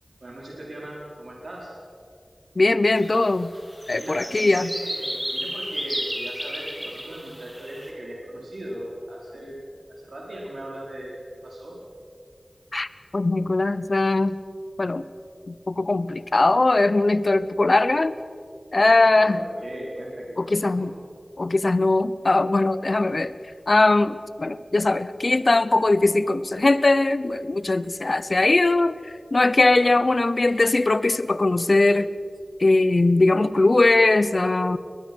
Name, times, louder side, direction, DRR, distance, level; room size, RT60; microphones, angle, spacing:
voice 1, 0.2-1.7 4.0-9.6 9.9-11.7 18.9-20.9 29.7-30.1, right 1 dB, 75° right, -4 dB, 4.8 m, -38 dB
voice 2, 2.6-3.5 3.9-4.7 12.7-12.9 13.1-14.4 14.8-15.0 15.5-18.2 18.7-19.4 20.4-20.9 21.4-23.3 23.7-32.1 32.6-34.8, left 2 dB, 55° left, 15 dB, 0.7 m, -20 dB
sound 1, 2.9-3.2 3.4-7.9, equal, 15° right, 5.2 m, -33 dB
22.0 x 20.5 x 6.3 m, 2.3 s
wide cardioid pair, 55°, 0 cm